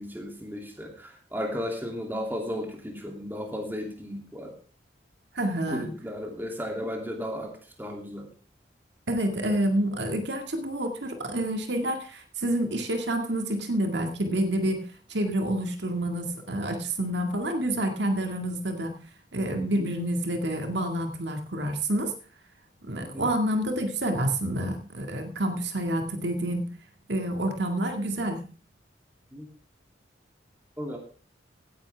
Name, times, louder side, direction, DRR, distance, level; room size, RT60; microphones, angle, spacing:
voice 1, 0.0-4.5 5.7-7.5 7.8-8.3 19.6-19.9 23.0-23.3 29.3-29.5 30.8-31.0, equal, 10° right, 1 dB, 2.8 m, -34 dB
voice 2, 5.3-5.9 9.1-18.9 19.3-22.1 22.8-26.7 27.1-28.4, right 1 dB, 70° right, 5 dB, 2.1 m, -28 dB
16.5 x 10.5 x 3.5 m, 0.39 s
head